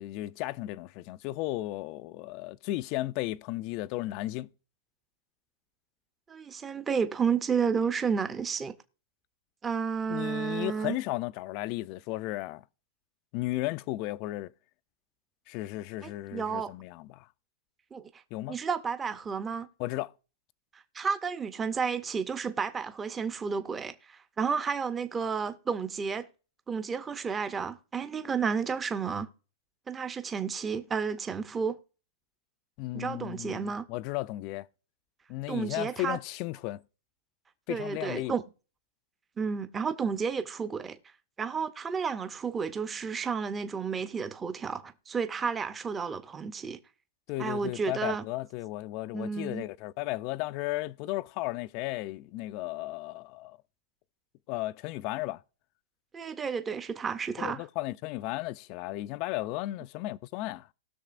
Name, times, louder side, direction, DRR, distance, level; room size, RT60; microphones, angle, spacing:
voice 1, 0.0-4.5 10.1-12.6 13.3-14.5 15.5-17.3 18.3-18.6 19.8-20.1 32.8-34.7 35.3-36.8 37.7-38.3 47.3-53.6 54.5-55.4 57.4-60.7, left 17 dB, 45° left, 0.4 m, -34 dB
voice 2, 6.3-8.7 9.6-11.0 16.0-16.7 17.9-18.1 18.5-19.7 20.7-26.3 26.7-29.3 29.9-31.8 32.9-33.8 35.5-36.2 37.7-38.4 39.4-41.0 41.4-46.8 47.4-48.2 49.1-49.6 56.1-57.7, right 6 dB, 15° right, 0.6 m, -31 dB
19.0 x 6.6 x 2.5 m
hypercardioid pair, 140°, 0 cm